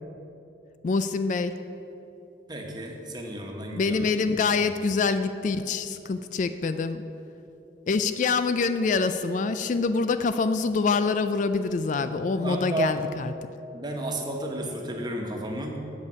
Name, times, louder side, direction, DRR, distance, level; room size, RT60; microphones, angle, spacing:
voice 1, 0.8-1.5 3.7-7.0 7.9-13.3, left 4 dB, 45° left, 10 dB, 0.3 m, -25 dB
voice 2, 2.5-4.0 4.6-4.7 12.4-13.0 13.7-15.8, right 1 dB, 25° right, 1 dB, 1.3 m, -32 dB
8.1 x 6.8 x 8.3 m, 2.9 s
head